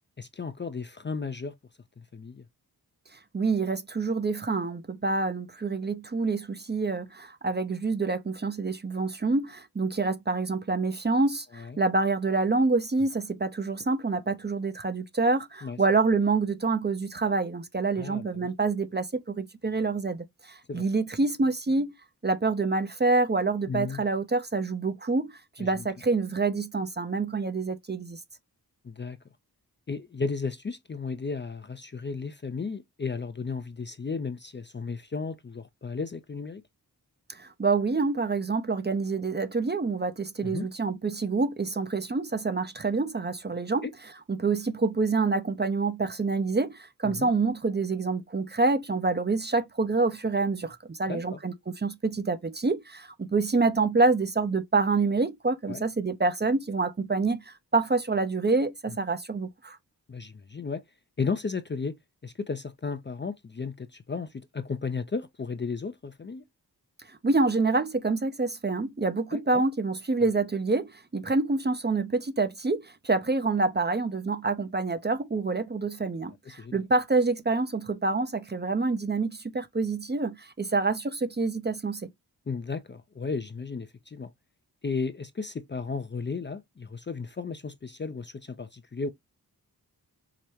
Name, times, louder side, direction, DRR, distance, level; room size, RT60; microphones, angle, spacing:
voice 1, 0.2-1.5 2.0-2.5 11.5-11.8 15.6-15.8 18.0-18.5 20.7-20.8 23.7-24.0 25.6-25.9 28.8-29.2 29.9-36.6 40.4-40.7 43.8-43.9 47.0-47.3 51.1-51.4 55.7-55.8 60.1-60.8 61.2-66.4 69.3-69.6 70.2-70.3 76.5-76.8 82.5-84.3 84.8-89.1, left 4 dB, 30° left, 0.4 m, -34 dB
voice 2, 3.3-21.9 22.2-28.2 37.3-43.8 44.3-59.8 67.1-82.1, right 3 dB, 25° right, 0.5 m, -27 dB
4.9 x 2.1 x 2.8 m
cardioid pair, 45°, 39 cm